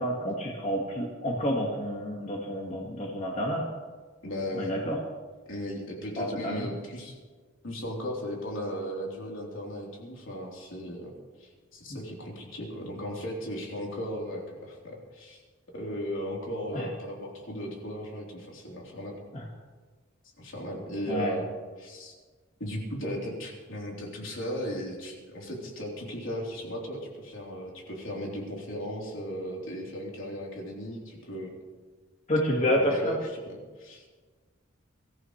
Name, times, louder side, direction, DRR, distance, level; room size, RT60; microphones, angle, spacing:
voice 1, 0.0-3.7 4.5-5.0 6.2-6.6 16.7-16.9 19.3-19.4 21.1-21.4 32.3-33.1, equal, 35° left, -1 dB, 1.8 m, -29 dB
voice 2, 4.2-4.8 5.5-7.1 7.6-11.1 11.4-15.4 15.7-19.2 20.4-21.5 21.8-22.1 22.6-31.5 32.6-34.1, equal, 75° left, -2 dB, 3.7 m, -36 dB
23.0 x 14.5 x 3.2 m, 1.4 s
head